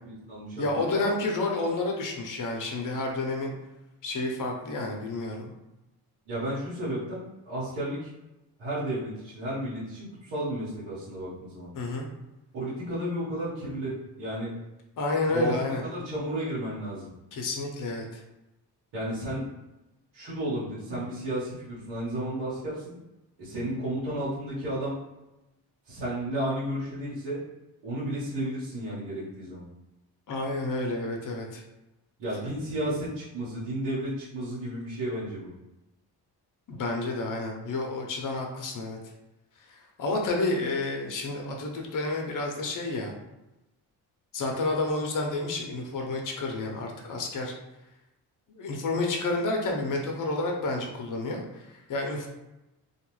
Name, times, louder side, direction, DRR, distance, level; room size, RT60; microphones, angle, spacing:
voice 1, 0.0-1.1 6.3-8.1 8.6-11.7 12.5-14.5 15.3-17.1 18.9-19.5 20.1-22.9 23.4-25.0 25.9-27.4 27.8-29.6 32.2-35.5, right 1 dB, 85° right, -11 dB, 1.2 m, -33 dB
voice 2, 0.6-3.5 4.0-5.5 11.7-12.1 15.0-15.8 17.3-18.2 30.3-31.6 36.7-39.0 39.7-43.1 44.3-47.5 48.6-52.3, left 2 dB, 50° left, 1 dB, 0.7 m, -30 dB
2.5 x 2.3 x 3.0 m, 0.97 s
supercardioid pair, 60°, 42 cm